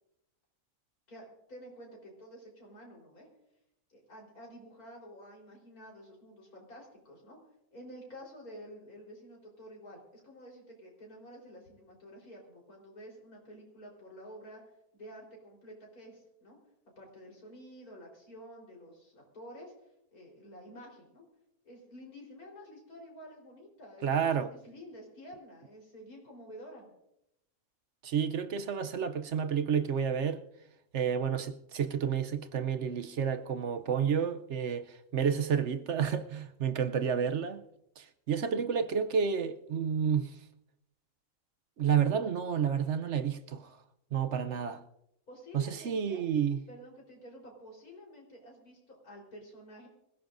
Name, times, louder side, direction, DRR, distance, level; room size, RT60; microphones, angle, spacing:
voice 1, 1.1-3.3 3.9-7.4 7.7-14.6 14.9-16.6 17.0-21.2 21.6-24.1 24.5-26.9 45.3-46.2 46.7-49.9, equal, 70° left, 4.6 m, -50 dB
voice 2, 24.0-24.5 28.0-30.4 30.9-37.6 38.0-40.3 41.8-43.8 44.1-44.8 45.5-46.6, right 7 dB, 60° right, 0.9 m, -30 dB
25.5 x 15.5 x 2.6 m
omnidirectional pair, 1.6 m